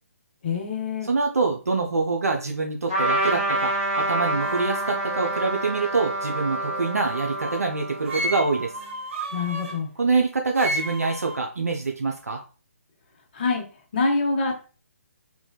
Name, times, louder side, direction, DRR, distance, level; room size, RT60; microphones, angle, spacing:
voice 1, 0.4-1.1 9.3-9.9 13.3-13.6 13.9-14.5, left 4 dB, 35° left, 3 dB, 0.6 m, -25 dB
voice 2, 1.1-8.7 10.0-12.4, right 4 dB, 75° right, 2 dB, 0.4 m, -25 dB
Trumpet, 2.9-8.8, right 1 dB, 20° right, 1.1 m, -28 dB
sound 1, 4.4-7.7 8.1-9.8 10.5-11.4, right 1 dB, 50° right, 0.9 m, -34 dB
2.6 x 2.2 x 2.2 m, 0.36 s
figure-of-eight pair, 140°, 8 cm